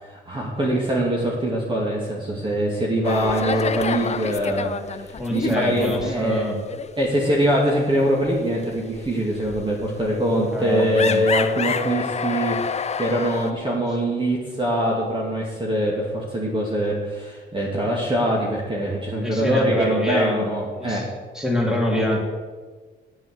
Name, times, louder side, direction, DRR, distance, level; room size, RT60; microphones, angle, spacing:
voice 1, 0.0-6.5 7.0-12.6 13.0-21.1 21.9-22.0, right 1 dB, 25° right, -3 dB, 2.4 m, -23 dB
sound 1, 3.0-6.4 6.7-6.9 7.3-13.5, left 6 dB, 35° left, 0.7 m, -29 dB
voice 2, 5.1-6.6 10.4-11.2 19.2-20.5 20.8-21.1 21.3-22.2, left 1 dB, 5° right, -1 dB, 3.4 m, -25 dB
9.0 x 7.9 x 7.7 m, 1.4 s
cardioid pair, 90°, 20 cm